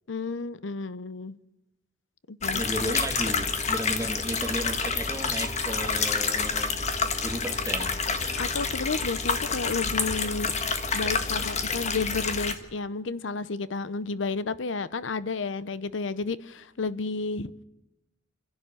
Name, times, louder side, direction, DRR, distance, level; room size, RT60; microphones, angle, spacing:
voice 1, 0.1-1.4 2.3-2.6 8.4-10.5 10.9-17.5, left 4 dB, 80° left, 0.8 m, -31 dB
sound 1, 2.4-12.5, left 5 dB, 35° left, 1.6 m, -28 dB
voice 2, 2.5-6.8 7.2-7.9, right 1 dB, 15° right, 1.9 m, -34 dB
28.5 x 11.0 x 8.9 m
head